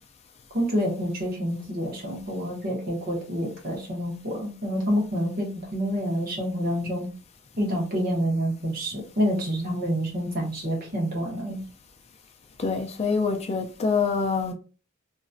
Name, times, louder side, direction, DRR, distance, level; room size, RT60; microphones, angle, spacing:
voice 1, 0.5-7.1 7.6-11.6, equal, 45° right, 1.3 m, -28 dB
voice 2, 12.6-14.5, left 5 dB, 30° left, 0.4 m, -25 dB
3.0 x 2.6 x 2.4 m
head